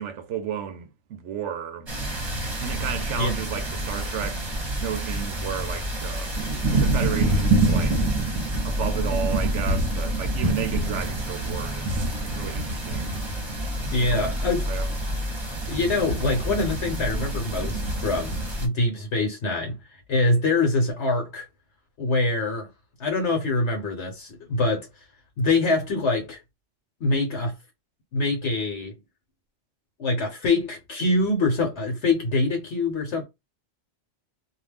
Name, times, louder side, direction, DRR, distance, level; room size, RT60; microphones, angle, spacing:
voice 1, 0.0-1.9 2.6-4.4 4.8-6.4 6.7-8.1 8.6-13.2 14.0-14.3 14.6-14.9, right 8 dB, 80° right, 0.9 m, -33 dB
sound 1, 1.9-18.7, right 1 dB, 25° right, 0.9 m, -27 dB
voice 2, 13.9-14.7 15.7-21.5 22.0-22.7 23.0-24.9 25.4-26.4 27.0-27.5 28.1-29.0 30.0-33.2, left 2 dB, 70° left, 1.1 m, -24 dB
2.6 x 2.3 x 3.4 m
omnidirectional pair, 1.2 m